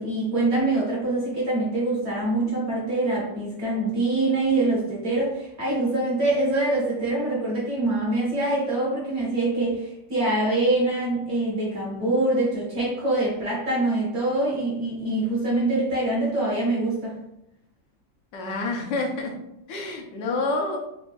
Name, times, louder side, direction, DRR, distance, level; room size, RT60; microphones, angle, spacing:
voice 1, 0.0-17.2, right 2 dB, 50° right, -5 dB, 0.8 m, -24 dB
voice 2, 18.3-19.3 19.7-20.8, left 2 dB, 85° left, 1 dB, 1.3 m, -28 dB
3.4 x 2.2 x 2.2 m, 0.82 s
omnidirectional pair, 1.9 m